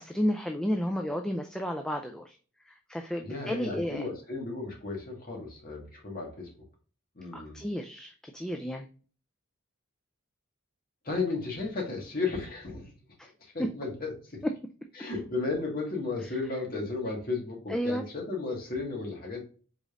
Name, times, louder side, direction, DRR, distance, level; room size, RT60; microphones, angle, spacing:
voice 1, 0.0-2.4 2.7-4.0 7.3-8.9 13.2-13.3 17.7-18.0, equal, 5° left, 4 dB, 0.3 m, -32 dB
voice 2, 3.2-6.5 7.2-7.6 11.0-12.9 13.4-14.4 15.0-19.4, left 3 dB, 45° left, 0 dB, 1.7 m, -34 dB
5.0 x 3.9 x 2.5 m, 0.39 s
head